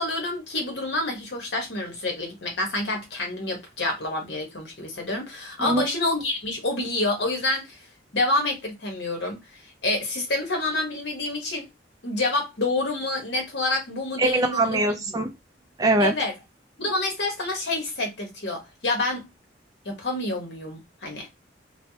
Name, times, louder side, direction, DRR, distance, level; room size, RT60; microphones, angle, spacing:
voice 1, 0.0-7.8 8.1-9.4 9.8-11.7 12.0-14.8 16.0-16.3 16.8-19.3 19.8-21.3, left 2 dB, 60° left, 1.1 m, -28 dB
voice 2, 14.2-15.3 15.8-16.1, right 2 dB, 20° right, 0.3 m, -22 dB
3.2 x 2.1 x 2.7 m
head